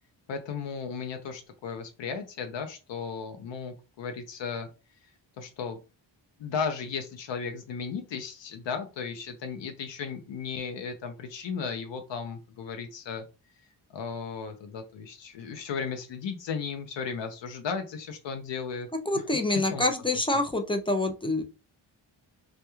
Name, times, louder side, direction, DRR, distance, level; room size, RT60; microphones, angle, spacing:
voice 1, 0.3-4.7 5.4-5.8 6.4-13.2 13.9-18.9 19.1-19.9 20.1-20.2, left 6 dB, 70° left, 7 dB, 0.6 m, -35 dB
voice 2, 19.1-21.4, left 2 dB, 15° left, 4 dB, 0.3 m, -26 dB
2.2 x 2.2 x 2.9 m, 0.30 s
cardioid pair, 90°, 46 cm